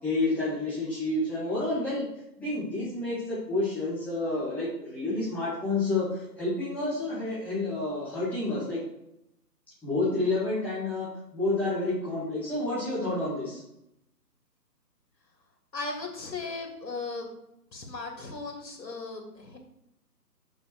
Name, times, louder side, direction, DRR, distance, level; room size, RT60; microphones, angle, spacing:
voice 1, 0.0-2.0 2.4-8.8 9.8-11.1 11.3-13.6, left 2 dB, 5° left, -12 dB, 2.1 m, -29 dB
voice 2, 15.7-17.3 17.7-19.6, left 3 dB, 75° left, 1 dB, 3.3 m, -37 dB
7.3 x 6.0 x 4.9 m, 0.81 s
figure-of-eight pair, 165°, 50 cm